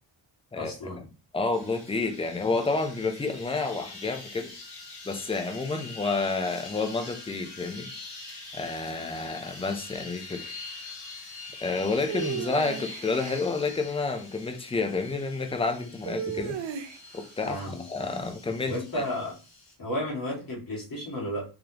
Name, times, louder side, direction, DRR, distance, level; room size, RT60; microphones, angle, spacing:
voice 1, 0.5-1.0 17.4-17.8 18.7-19.3 19.8-21.4, equal, 45° left, 2.0 m, -33 dB
voice 2, 1.3-4.5 5.1-7.9 8.5-10.5 11.6-16.6 17.1-19.0, left 3 dB, 15° left, 0.5 m, -30 dB
sound 1, 1.5-19.7, left 3 dB, 75° left, 1.6 m, -44 dB
sound 2, 12.1-13.5 16.0-17.2, right 8 dB, 75° right, 0.6 m, -34 dB
3.9 x 3.2 x 2.9 m
wide cardioid pair, 120°, 45 cm